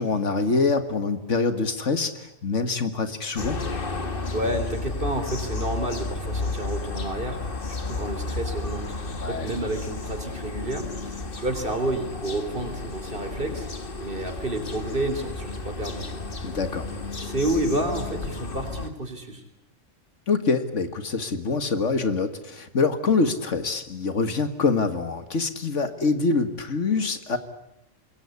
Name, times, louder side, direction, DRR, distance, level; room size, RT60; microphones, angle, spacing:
voice 1, 0.0-3.6 9.2-9.5 16.4-16.9 20.3-27.4, left 4 dB, 70° left, 10 dB, 2.1 m, -25 dB
sound 1, 3.4-18.9, left 3 dB, 45° left, 1.9 m, -32 dB
voice 2, 4.3-8.9 9.2-13.7 14.0-16.2 17.2-19.4, right 1 dB, 45° right, 8 dB, 4.1 m, -30 dB
26.0 x 22.0 x 9.6 m, 0.79 s
omnidirectional pair, 1.3 m